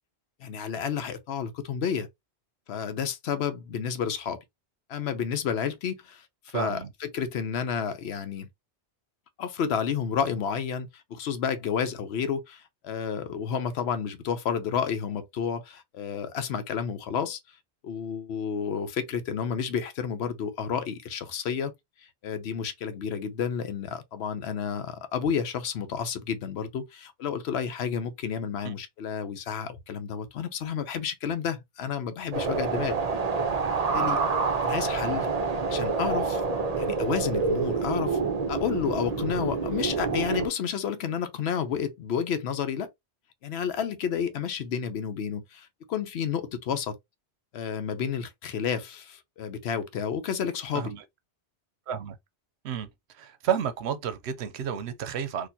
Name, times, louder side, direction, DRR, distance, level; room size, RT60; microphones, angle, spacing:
voice 1, 0.4-2.1 2.7-4.4 4.9-8.5 9.4-17.4 17.8-21.7 22.0-33.0 33.7-34.2 34.6-35.3 35.7-36.4 36.8-38.2 38.5-42.9 43.4-47.0 47.5-50.9, left 7 dB, 75° left, 0.9 m, -31 dB
voice 2, 6.5-6.9 28.6-28.7 50.7-51.0 51.9-52.2 52.6-52.9 53.1-55.5, right 8 dB, 75° right, 0.9 m, -31 dB
sound 1, 32.3-40.5, right 4 dB, 40° right, 0.7 m, -27 dB
4.2 x 2.5 x 2.7 m
omnidirectional pair, 1.1 m